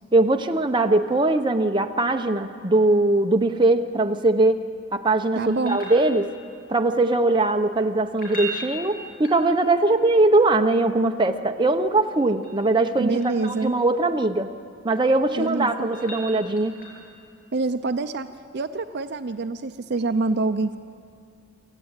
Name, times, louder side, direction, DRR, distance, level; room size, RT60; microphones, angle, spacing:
voice 1, 0.1-4.6 4.9-6.3 6.7-14.5 14.8-16.8, right 2 dB, 20° right, 5 dB, 0.8 m, -21 dB
sound 1, 5.4-6.6 8.1-9.9 12.0-13.7 15.1-17.2 19.9-20.0, right 1 dB, 45° left, 7.0 m, -38 dB
voice 2, 5.4-5.8 13.0-13.7 15.4-15.9 17.5-18.3 18.5-20.8, right 3 dB, 50° right, 9 dB, 0.5 m, -26 dB
26.0 x 14.0 x 8.9 m, 2.3 s
head